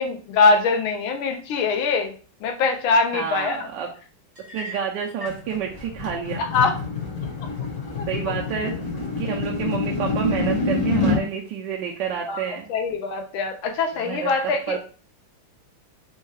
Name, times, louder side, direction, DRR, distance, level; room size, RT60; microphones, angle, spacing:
voice 1, 0.0-2.1 2.4-3.7 6.4-6.7 7.9-8.1 12.3-12.4 12.7-14.8, left 4 dB, 75° left, 4 dB, 1.5 m, -22 dB
voice 2, 3.1-3.9 4.5-6.4 8.1-8.8 9.2-12.7 13.9-14.8, right 7 dB, 75° right, 0 dB, 1.0 m, -29 dB
sound 1, 4.3-5.5, left 1 dB, 35° right, 0.3 m, -39 dB
sound 2, 5.3-11.3, left 3 dB, 45° left, 1.2 m, -26 dB
4.4 x 2.3 x 3.2 m, 0.39 s
omnidirectional pair, 2.3 m